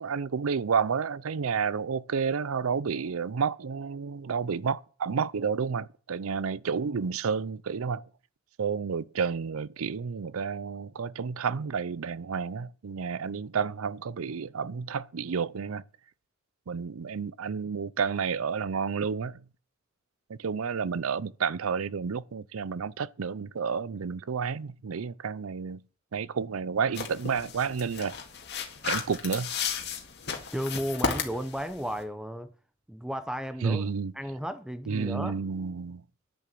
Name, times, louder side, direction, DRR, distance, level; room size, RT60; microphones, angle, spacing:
voice 1, 0.0-8.1 8.6-15.8 16.7-19.4 20.3-25.8 26.1-28.2 28.8-29.5 33.6-34.1 34.9-36.0, right 6 dB, 80° right, 0.5 m, -30 dB
sound 1, 26.9-32.0, left 5 dB, 55° left, 2.0 m, -34 dB
voice 2, 30.5-32.5 32.9-33.9 34.1-35.3, equal, 5° right, 0.7 m, -34 dB
10.5 x 6.9 x 7.6 m
head